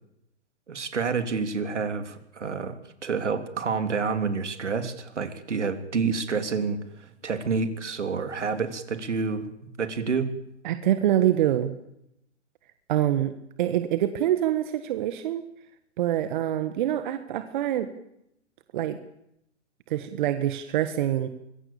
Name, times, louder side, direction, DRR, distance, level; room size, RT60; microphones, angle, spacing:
voice 1, 0.7-6.8 7.2-9.5 9.8-10.3, right 5 dB, 75° right, 9 dB, 3.4 m, -28 dB
voice 2, 10.6-11.7 12.9-13.3 13.6-15.4 16.0-17.9 18.7-19.0 19.9-21.3, right 12 dB, 40° right, 10 dB, 1.7 m, -25 dB
25.0 x 22.0 x 7.2 m, 0.80 s
figure-of-eight pair, 130°, 36 cm